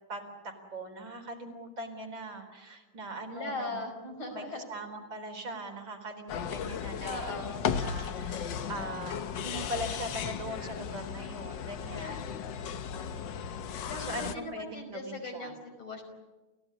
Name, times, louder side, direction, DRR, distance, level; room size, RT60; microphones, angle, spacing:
voice 1, 0.1-3.8 4.3-12.5 14.0-15.5, right 1 dB, 65° right, 3 dB, 4.9 m, -41 dB
voice 2, 3.3-4.7 7.0-7.8 13.9-16.0, left 2 dB, 85° left, 3 dB, 6.0 m, -39 dB
sound 1, 6.3-14.4, left 7 dB, 65° left, 1.7 m, -36 dB
29.5 x 16.5 x 9.9 m, 1.1 s
omnidirectional pair, 2.2 m